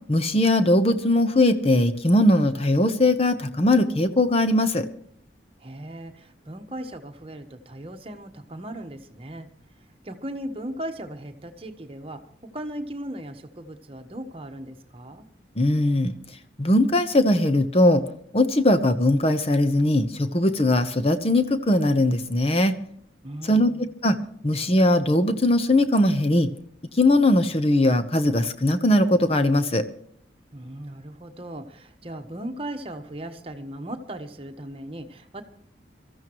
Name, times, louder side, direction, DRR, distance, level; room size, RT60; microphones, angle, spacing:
voice 1, 0.1-4.9 15.6-16.1 16.6-18.0 18.3-22.7 23.4-24.2 24.4-26.5 26.9-29.8, left 1 dB, 30° left, 10 dB, 1.0 m, -20 dB
voice 2, 5.6-9.5 10.0-15.3 23.2-23.9 30.5-35.4, right 1 dB, 30° right, 5 dB, 1.3 m, -37 dB
23.5 x 14.0 x 3.1 m, 0.68 s
head